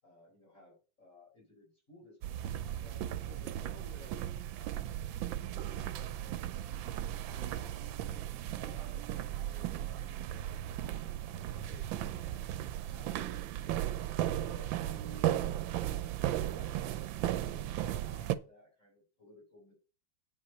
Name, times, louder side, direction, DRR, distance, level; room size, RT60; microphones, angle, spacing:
voice 1, 0.0-2.3 2.8-4.2 5.3-6.5 7.1-11.1 11.5-12.5 12.9-19.7, left 2 dB, 40° left, -5 dB, 5.0 m, -58 dB
sound 1, 2.2-18.3, right 12 dB, 85° right, 1.4 m, -36 dB
8.8 x 5.8 x 5.5 m, 0.35 s
omnidirectional pair, 2.1 m